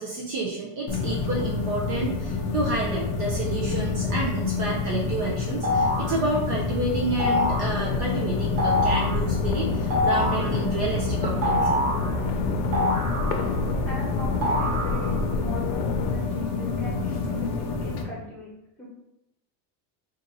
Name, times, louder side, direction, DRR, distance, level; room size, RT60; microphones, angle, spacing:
voice 1, 0.0-11.9, right 2 dB, 45° right, -2 dB, 0.6 m, -30 dB
sound 1, 0.9-18.0, left 5 dB, 35° left, 0.4 m, -28 dB
sound 2, 5.6-6.2 7.2-7.7 8.6-9.2 9.9-10.5 11.4-12.1 12.7-13.7 14.4-15.2, left 1 dB, 80° right, 1.2 m, -25 dB
sound 3, 7.2-16.2, left 3 dB, 80° left, 0.6 m, -31 dB
voice 2, 13.9-18.5 18.8-18.9, left 1 dB, 5° left, -7 dB, 1.1 m, -40 dB
2.7 x 2.6 x 3.8 m, 0.87 s
cardioid pair, 160°, 47 cm